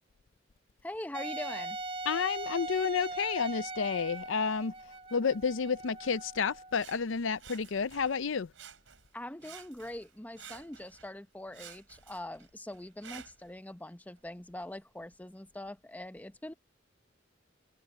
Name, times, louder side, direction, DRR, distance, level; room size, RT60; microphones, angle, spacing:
voice 1, 0.8-1.8 9.1-16.5, left 1 dB, 10° left, 0.8 m, -43 dB
Wind instrument woodwind instrument, 1.1-6.8, right 2 dB, 30° right, 0.9 m, -40 dB
voice 2, 2.1-4.7 5.1-8.5, left 5 dB, 80° left, 0.6 m, -30 dB
Sawing, 6.7-8.2 8.5-9.1 9.4-11.1 11.5-13.5 14.2-14.3, right 8 dB, 85° right, 4.5 m, -52 dB
head